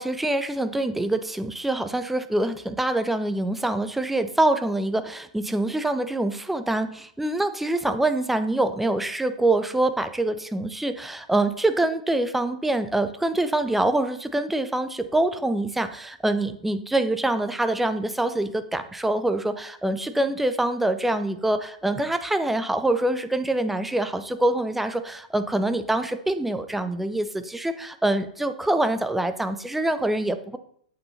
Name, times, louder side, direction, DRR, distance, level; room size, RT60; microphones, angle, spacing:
voice 1, 0.0-30.6, right 1 dB, 5° right, 10 dB, 0.8 m, -25 dB
8.6 x 8.2 x 4.1 m, 0.62 s
figure-of-eight pair, 100°, 4 cm